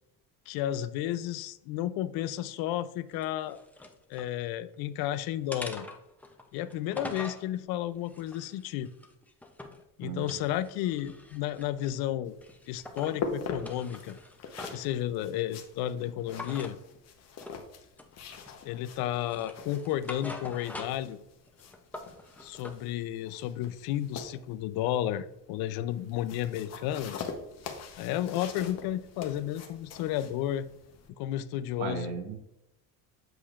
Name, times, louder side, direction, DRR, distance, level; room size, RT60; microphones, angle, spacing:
voice 1, 0.5-3.6 4.1-5.9 6.5-8.9 10.0-12.3 12.7-14.2 14.7-16.8 18.6-21.2 22.4-27.1 28.0-30.7 31.2-32.2, left 12 dB, 80° left, 0.5 m, -32 dB
sound 1, 3.1-4.3 4.7-5.1 5.5-7.4 8.0-9.8 10.2-12.0 12.4-13.2 13.5-14.9 16.3-16.8 17.4-17.6 18.0-18.7 19.1-21.1 21.5-22.8, left 2 dB, 5° left, 0.5 m, -44 dB
voice 2, 10.0-10.4 31.8-32.4, right 6 dB, 80° right, 1.2 m, -36 dB
sound 2, 12.2-31.1, left 5 dB, 45° left, 0.9 m, -43 dB
7.9 x 6.4 x 2.4 m
cardioid pair, 150°, 36 cm